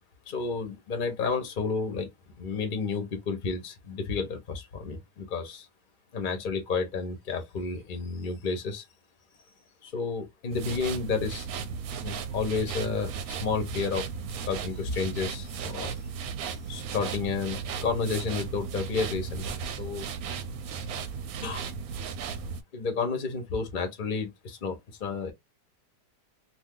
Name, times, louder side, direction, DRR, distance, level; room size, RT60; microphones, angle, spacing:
voice 1, 0.3-2.1 2.4-5.7 6.1-8.8 9.8-11.5 12.0-14.1 14.5-15.9 16.7-19.5 19.8-20.1 21.4-21.7 22.7-25.3, left 4 dB, 40° left, 0.8 m, -31 dB
sound 1, 10.5-22.6, right 6 dB, 70° right, 0.9 m, -35 dB
2.6 x 2.6 x 3.7 m
omnidirectional pair, 1.9 m